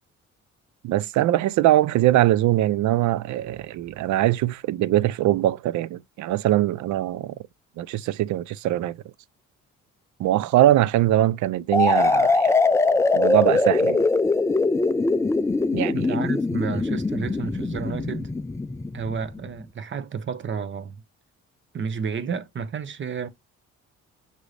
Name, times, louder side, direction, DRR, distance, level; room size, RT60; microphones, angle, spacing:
voice 1, 0.8-7.4 7.8-9.0 10.2-12.5 13.1-14.0 15.7-16.2, right 14 dB, 70° right, 0.4 m, -22 dB
sound 1, 11.7-19.4, left 3 dB, 10° left, 0.3 m, -22 dB
voice 2, 15.9-18.3 18.9-21.0 21.7-23.3, right 6 dB, 40° right, 0.8 m, -31 dB
6.1 x 2.7 x 3.2 m
cardioid pair, 90°, 30 cm